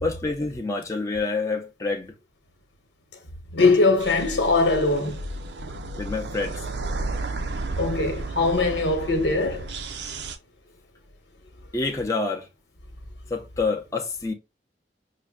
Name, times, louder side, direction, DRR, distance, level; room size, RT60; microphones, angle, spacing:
voice 1, 0.0-2.1 6.0-6.7 11.7-12.5 13.3-14.3, left 3 dB, 20° left, 0.6 m, -27 dB
voice 2, 3.5-5.2 7.8-9.7, left 3 dB, 85° left, 1.1 m, -21 dB
sound 1, 4.0-10.4, right 2 dB, 75° right, 0.5 m, -33 dB
5.7 x 2.2 x 2.3 m
head